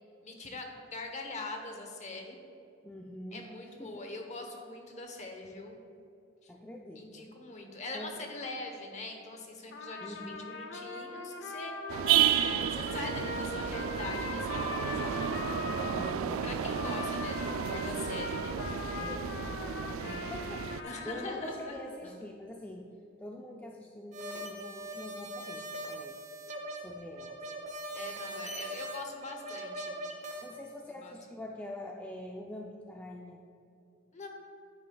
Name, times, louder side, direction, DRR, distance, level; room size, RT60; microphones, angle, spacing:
voice 1, 0.2-2.4 3.3-5.8 6.4-6.5 7.0-11.8 12.7-15.2 15.9-16.0 16.4-18.6 20.8-22.1 27.9-30.0 31.0-31.1 34.1-34.3, left 2 dB, 35° left, 3 dB, 1.0 m, -42 dB
voice 2, 2.8-3.4 3.8-4.1 6.5-7.3 7.9-8.2 10.0-10.6 15.9-16.4 19.0-22.9 23.2-26.2 26.8-27.5 30.4-33.4, left 1 dB, 10° left, 0 dB, 0.3 m, -45 dB
Trumpet, 9.7-16.2 16.6-22.0, left 3 dB, 55° left, 0.6 m, -41 dB
sound 1, 11.9-20.8, right 9 dB, 90° right, 0.4 m, -32 dB
sound 2, 24.1-30.5, right 1 dB, 35° right, 0.8 m, -41 dB
9.7 x 9.2 x 2.3 m, 2.7 s
head